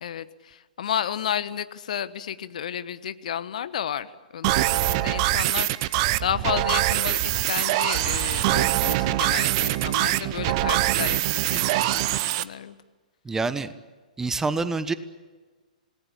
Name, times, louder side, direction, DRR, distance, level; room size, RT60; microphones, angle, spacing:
voice 1, 0.0-12.8, left 9 dB, 60° left, 14 dB, 1.3 m, -32 dB
sound 1, 4.4-12.4, right 16 dB, 40° right, 1.0 m, -23 dB
voice 2, 13.2-13.7 14.2-14.9, right 3 dB, 10° right, 14 dB, 1.2 m, -26 dB
27.0 x 19.5 x 8.7 m, 1.4 s
figure-of-eight pair, 115°, 5 cm